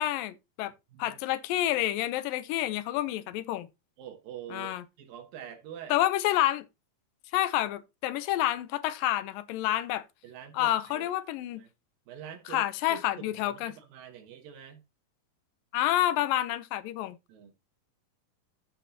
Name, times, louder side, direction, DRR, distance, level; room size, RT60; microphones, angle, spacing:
voice 1, 0.0-0.7 1.0-3.7 4.5-4.8 5.9-6.7 7.3-10.0 10.5-11.6 12.5-13.7 15.7-17.2, left 14 dB, 90° left, 2.4 m, -28 dB
voice 2, 4.0-5.9 10.2-11.1 11.6-11.7 12.1-14.8 17.3-17.5, right 8 dB, 85° right, 3.1 m, -45 dB
13.5 x 5.9 x 2.8 m
omnidirectional pair, 3.9 m